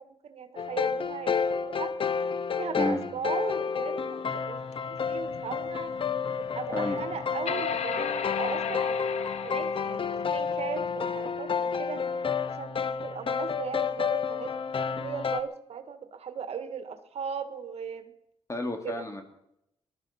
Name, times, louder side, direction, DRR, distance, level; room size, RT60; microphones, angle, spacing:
voice 1, 0.0-1.9 2.5-5.9 6.4-8.9 9.4-12.0 12.4-18.1 18.8-19.1, right 7 dB, 65° right, 9 dB, 1.7 m, -38 dB
sound 1, 0.6-15.4, left 6 dB, 50° left, 1.0 m, -30 dB
sound 2, 4.7-11.2, left 7 dB, 75° left, 1.2 m, -36 dB
voice 2, 6.7-7.0 18.5-19.2, left 1 dB, 25° left, 4 dB, 3.7 m, -31 dB
19.5 x 12.5 x 5.8 m, 0.80 s
cardioid pair, 65°, 11 cm